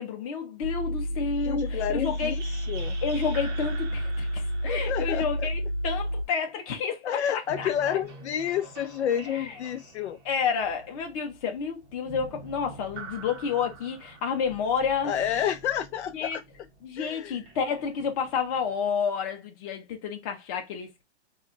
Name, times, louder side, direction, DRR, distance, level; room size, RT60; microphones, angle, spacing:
voice 1, 0.0-2.3 3.0-8.0 9.3-9.5 10.2-15.2 16.1-16.4 16.8-21.0, left 6 dB, 30° left, 0.7 m, -30 dB
sound 1, 0.6-6.3, equal, 75° right, 0.7 m, -30 dB
sound 2, 1.2-6.3 7.3-18.8, right 4 dB, 25° right, 0.6 m, -47 dB
voice 2, 1.4-3.0 4.7-5.5 7.0-10.2 15.0-16.4 17.0-17.4, left 9 dB, 70° left, 0.5 m, -30 dB
2.3 x 2.0 x 3.8 m
hypercardioid pair, 155°, 35 cm